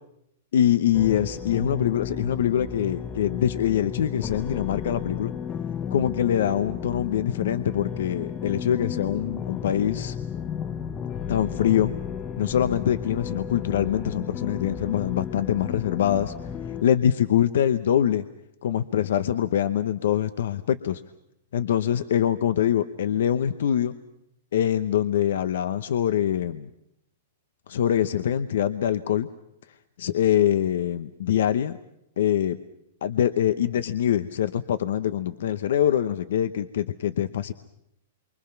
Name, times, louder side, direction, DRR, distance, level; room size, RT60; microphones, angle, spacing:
voice 1, 0.5-5.3 5.9-10.2 11.3-11.9 12.4-16.3 16.8-18.2 18.6-21.0 21.5-23.9 24.5-26.7 27.7-29.3 30.0-31.8 32.2-32.6 33.0-37.5, left 10 dB, 75° left, 12 dB, 0.9 m, -24 dB
sound 1, 0.9-16.8, left 8 dB, 25° left, 0.9 m, -33 dB
28.0 x 24.5 x 5.9 m, 0.78 s
hypercardioid pair, 140°, 0 cm